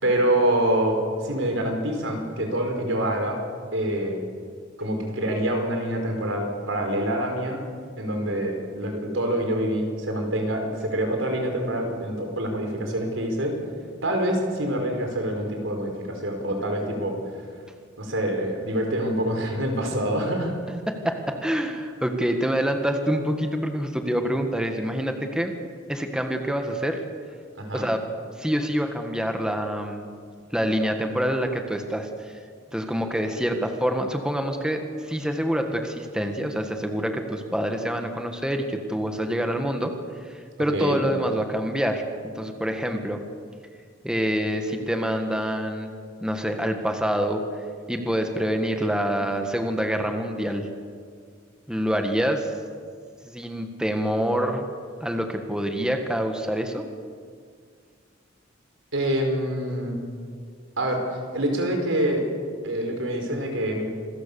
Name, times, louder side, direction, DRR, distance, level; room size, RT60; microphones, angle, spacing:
voice 1, 0.0-1.0 1.2-3.4 3.7-4.2 4.8-7.6 8.0-13.5 14.0-17.2 18.0-20.5 27.5-27.9 40.7-41.0 58.9-60.0 60.8-61.0 61.3-62.2 62.6-64.0, right 1 dB, 80° right, 3 dB, 5.1 m, -26 dB
voice 2, 20.9-25.5 25.9-27.0 27.7-28.0 28.4-30.1 30.5-32.3 32.7-39.9 40.2-42.0 42.3-43.2 44.0-45.9 46.2-47.4 47.9-50.7 51.7-52.5 53.2-54.7 55.0-56.9, equal, 5° right, 4 dB, 1.6 m, -26 dB
27.0 x 21.0 x 7.0 m, 2.1 s
head